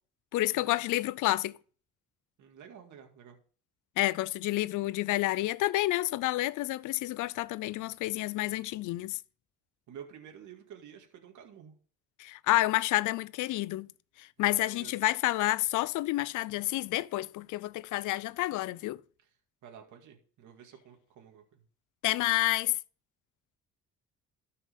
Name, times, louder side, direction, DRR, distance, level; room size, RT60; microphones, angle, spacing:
voice 1, 0.3-1.5 4.0-9.2 12.2-13.9 14.2-19.0 22.0-22.8, left 17 dB, 85° left, 0.5 m, -29 dB
voice 2, 2.4-3.4 9.9-11.7 14.4-15.0 19.2-19.3 19.6-21.6, right 8 dB, 75° right, 2.1 m, -51 dB
13.0 x 5.6 x 5.2 m
cardioid pair, 90°, 30 cm